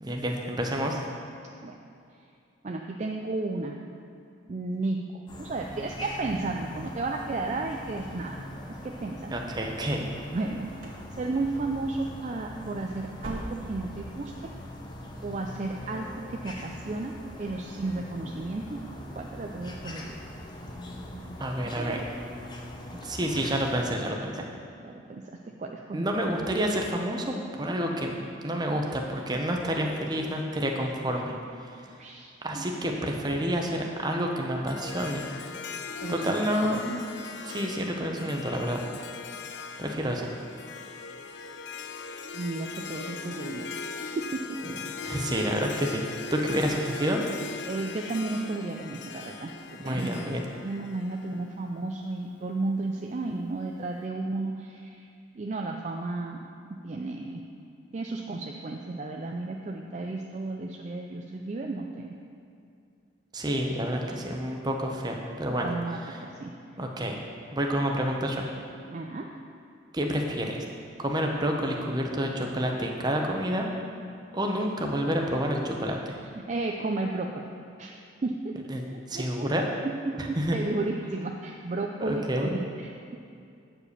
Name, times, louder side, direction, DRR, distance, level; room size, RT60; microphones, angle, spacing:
voice 1, 0.0-1.0 9.3-10.1 21.4-22.0 23.0-24.5 25.9-31.3 32.4-35.2 36.1-37.1 37.4-38.8 39.8-40.3 45.0-46.0 46.3-47.2 49.8-50.4 63.3-65.7 66.8-67.2 67.5-68.4 69.9-70.6 71.0-73.7 74.3-76.2 78.7-78.8 79.1-79.6 80.2-80.6 82.0-82.5, equal, 20° right, 1 dB, 0.7 m, -29 dB
voice 2, 2.6-3.8 4.5-8.4 8.7-9.3 10.3-10.7 11.1-14.5 15.2-18.9 19.2-20.2 21.7-22.1 24.8-26.1 31.9-32.7 36.0-36.5 42.3-43.8 44.0-44.6 47.7-55.1 55.3-56.4 56.7-57.4 57.9-62.2 63.6-63.7 64.1-64.2 65.6-66.6 68.8-69.4 76.2-77.5 77.8-77.9 78.2-78.5 78.9-79.5 79.8-83.2, right 2 dB, 35° right, 2 dB, 0.4 m, -33 dB
sound 1, 5.3-23.8, left 1 dB, 20° left, 0.7 m, -42 dB
sound 2, 10.4-11.1 11.4-11.8 12.1-12.3 12.7-14.0 14.3-14.4 14.9-15.0, right 1 dB, 85° right, 1.5 m, -42 dB
Harp, 34.7-51.9, left 5 dB, 60° left, 0.5 m, -40 dB
8.7 x 4.9 x 6.5 m, 2.5 s
head